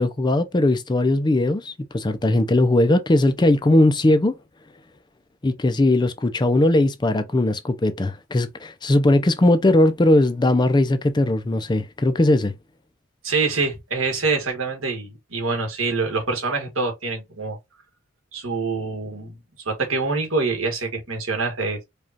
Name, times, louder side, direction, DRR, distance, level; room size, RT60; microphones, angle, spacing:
voice 1, 0.0-4.3 5.4-12.5, left 1 dB, 20° left, 0.4 m, -19 dB
voice 2, 13.2-17.6 18.3-19.4 19.6-21.8, right 4 dB, 75° right, 1.6 m, -25 dB
4.9 x 2.4 x 2.7 m
head